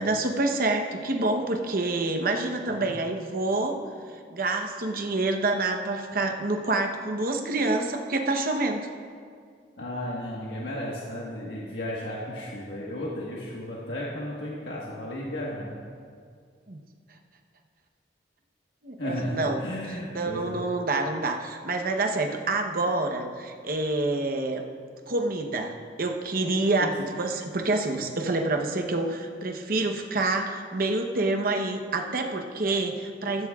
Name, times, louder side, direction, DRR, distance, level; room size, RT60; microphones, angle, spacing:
voice 1, 0.0-3.8 4.3-8.8 16.7-16.8 18.8-19.6 19.9-24.6 25.1-33.5, right 2 dB, 55° right, 4 dB, 1.0 m, -27 dB
voice 2, 9.8-15.7 19.0-20.6 26.8-26.9, left 1 dB, 80° left, -5 dB, 1.5 m, -34 dB
16.0 x 14.0 x 2.4 m, 2.2 s
head